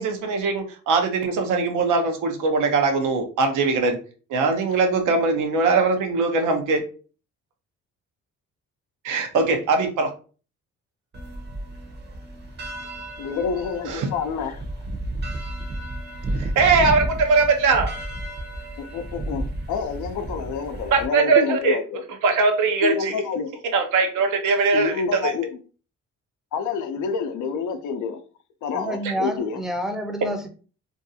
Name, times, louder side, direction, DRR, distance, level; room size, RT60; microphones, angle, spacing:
voice 1, 0.0-4.0 4.3-6.8 9.0-10.1 13.9-14.1 16.4-17.9 20.9-21.8 22.2-23.1 23.7-25.3, right 4 dB, 85° right, 0.7 m, -21 dB
sound 1, 11.1-21.1, right 1 dB, 35° right, 0.7 m, -32 dB
voice 2, 13.2-14.6 18.8-22.0 22.8-23.6 24.7-25.6 26.5-28.2 28.6-29.6, left 6 dB, 80° left, 0.5 m, -28 dB
voice 3, 28.7-30.5, equal, ahead, 0.5 m, -28 dB
2.6 x 2.3 x 2.6 m
cardioid pair, 90°, 30 cm